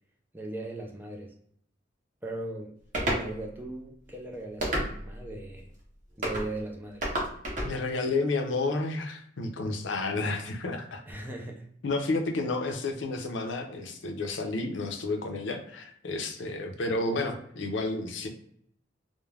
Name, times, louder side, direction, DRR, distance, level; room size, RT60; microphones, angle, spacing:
voice 1, 0.3-1.3 2.2-5.7 6.2-7.1 11.1-11.7, right 2 dB, 10° right, 0 dB, 0.4 m, -38 dB
sound 1, 2.9-3.3 4.6-5.2 6.2-6.5 7.0-7.7, right 1 dB, 45° right, 0.8 m, -29 dB
voice 2, 7.6-11.0 11.8-18.3, left 3 dB, 85° left, 5 dB, 0.5 m, -31 dB
2.3 x 2.1 x 3.2 m, 0.67 s
head